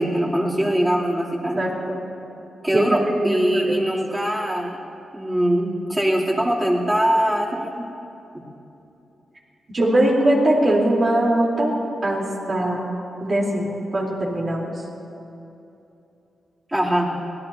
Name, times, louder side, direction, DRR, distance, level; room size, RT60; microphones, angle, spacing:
voice 1, 0.0-1.6 2.6-4.8 5.1-7.8 16.7-17.1, right 1 dB, 10° right, -5 dB, 3.4 m, -22 dB
voice 2, 1.6-2.0 2.7-2.8 3.1-3.9 9.7-11.7 12.0-12.8 13.2-14.7, right 1 dB, 45° right, -3 dB, 4.0 m, -21 dB
23.5 x 18.0 x 2.9 m, 2.8 s
cardioid pair, 70°, 0 cm